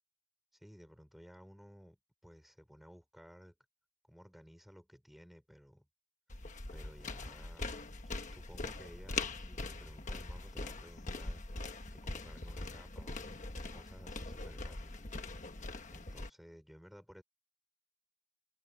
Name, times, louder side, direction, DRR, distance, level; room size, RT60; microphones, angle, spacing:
voice 1, 0.5-3.6 4.1-5.9 6.7-7.7 8.0-11.6 11.9-13.4 13.7-15.0 15.9-17.2, equal, ahead, 4.9 m, -56 dB
sound 1, 6.3-16.3, left 3 dB, 35° left, 1.3 m, -42 dB
head